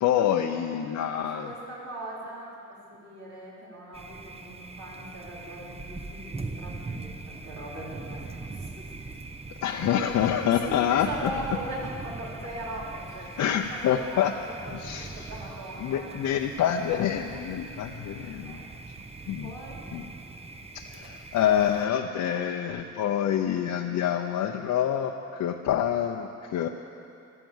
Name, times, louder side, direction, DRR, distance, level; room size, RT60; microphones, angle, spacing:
voice 1, 0.0-1.5 9.6-11.3 13.4-14.3 14.7-15.3 15.8-18.6 19.3-19.5 19.9-20.0 20.7-26.7, left 9 dB, 70° left, 2 dB, 0.8 m, -27 dB
voice 2, 1.4-8.9 10.4-16.5 18.3-18.7 19.4-19.9, right 1 dB, 65° right, -6 dB, 4.5 m, -40 dB
Thunder, 3.9-21.9, right 3 dB, 20° right, 0.9 m, -41 dB
15.0 x 13.0 x 7.3 m, 2.6 s
cardioid pair, 90°, 31 cm